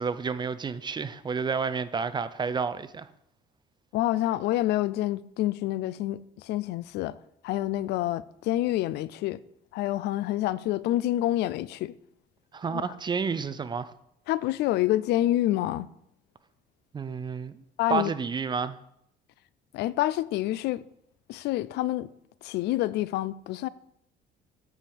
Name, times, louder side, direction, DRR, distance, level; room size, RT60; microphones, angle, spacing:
voice 1, 0.0-3.1 12.5-13.9 16.9-17.6 17.9-18.8, right 5 dB, 25° right, 0.6 m, -30 dB
voice 2, 3.9-7.1 7.4-9.4 9.7-11.9 12.7-12.8 14.3-15.9 17.8-18.1 19.7-20.8 21.3-22.1 22.4-23.7, left 14 dB, 80° left, 0.5 m, -27 dB
9.0 x 4.8 x 7.0 m
cardioid pair, 110°, 17 cm